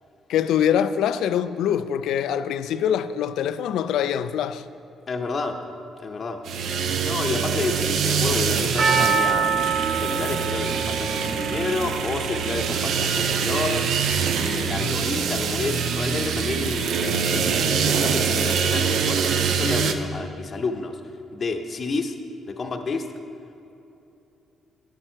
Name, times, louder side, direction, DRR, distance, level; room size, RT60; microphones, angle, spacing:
voice 1, 0.3-4.6, left 9 dB, 85° left, 0.3 m, -24 dB
voice 2, 5.1-5.6 6.0-6.4 7.0-13.9 14.4-21.0 21.3-22.2 22.5-23.1, left 4 dB, 40° left, 0.7 m, -30 dB
sound 1, 6.4-19.9, right 6 dB, 75° right, 0.5 m, -24 dB
Percussion, 8.8-13.1 13.4-13.5, right 5 dB, 50° right, 0.9 m, -26 dB
11.0 x 7.4 x 4.4 m
cardioid pair, 90°, 0 cm